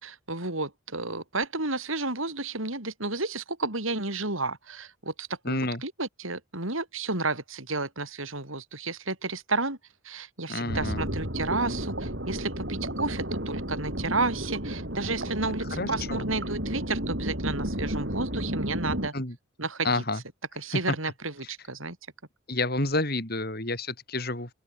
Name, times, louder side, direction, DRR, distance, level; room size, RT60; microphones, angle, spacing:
voice 1, 0.0-9.8 10.0-19.1 19.6-20.0 20.6-22.0, right 3 dB, 75° right, 6.7 m, -32 dB
voice 2, 5.4-5.8 10.5-11.1 15.8-16.3 19.1-19.3 19.8-20.2 20.7-20.8 22.5-24.5, left 2 dB, 50° left, 4.8 m, -29 dB
sound 1, 10.7-19.1, equal, 55° right, 7.8 m, -32 dB
open air
head